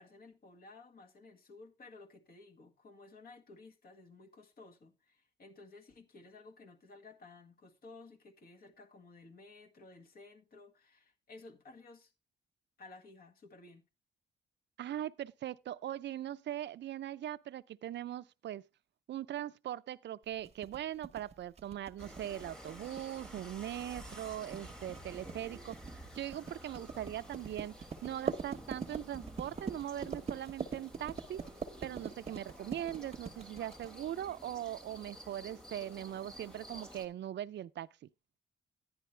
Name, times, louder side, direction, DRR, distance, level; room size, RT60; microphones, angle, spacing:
voice 1, 0.0-12.1 12.8-13.8, left 3 dB, 50° left, 1.8 m, -55 dB
voice 2, 14.8-18.6 19.1-27.7 28.0-31.4 31.8-38.1, right 12 dB, 65° right, 0.5 m, -41 dB
sound 1, 20.4-34.2, right 5 dB, 35° right, 0.9 m, -42 dB
sound 2, 22.0-37.1, right 1 dB, 5° left, 1.6 m, -51 dB
11.0 x 10.0 x 3.3 m
wide cardioid pair, 145°, 19 cm